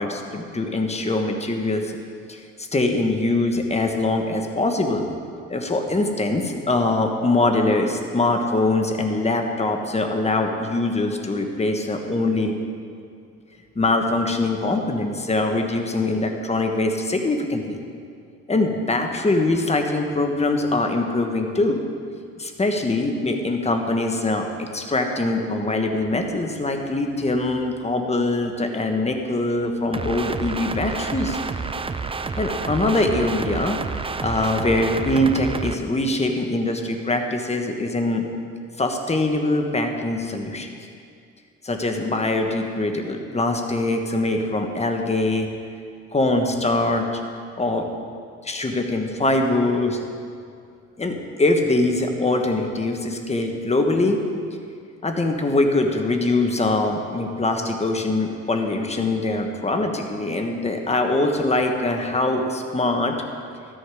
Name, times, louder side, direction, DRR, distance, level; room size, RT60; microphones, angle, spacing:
voice 1, 0.0-2.0 2.3-2.4 2.7-5.0 5.5-12.5 13.7-17.8 18.5-21.8 22.4-31.4 32.4-38.3 38.8-40.7 41.6-45.5 46.1-47.0 47.6-47.9 48.4-50.0 51.0-54.2 55.0-63.1, left 2 dB, 20° left, 4 dB, 1.4 m, -23 dB
sound 1, 29.9-35.7, right 4 dB, 20° right, 0.5 m, -29 dB
13.0 x 10.0 x 4.9 m, 2.3 s
cardioid pair, 90°, 30 cm